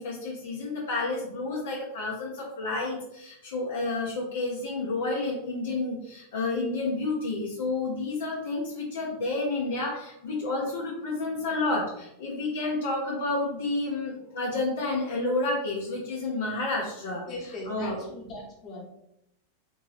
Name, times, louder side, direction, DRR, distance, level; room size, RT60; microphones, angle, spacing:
voice 1, 0.0-18.0, left 2 dB, 60° left, -4 dB, 0.7 m, -30 dB
voice 2, 17.2-18.8, left 2 dB, 30° left, -3 dB, 1.2 m, -39 dB
3.5 x 2.8 x 3.2 m, 0.82 s
figure-of-eight pair, 90°, 0 cm